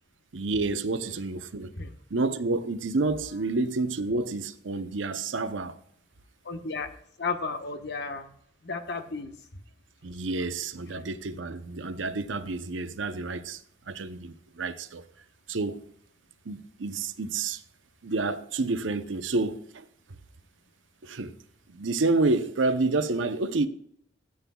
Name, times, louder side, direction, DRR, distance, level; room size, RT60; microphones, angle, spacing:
voice 1, 0.3-1.7 2.1-5.8 10.0-13.6 13.9-15.0 15.5-15.8 16.5-17.6 18.0-19.8 21.0-21.3 21.7-23.7, right 3 dB, 90° right, 0.8 m, -29 dB
voice 2, 6.5-6.9 7.2-8.3 8.6-9.3 10.3-10.5 10.9-11.0, left 4 dB, 60° left, 1.1 m, -33 dB
13.5 x 8.8 x 2.3 m
head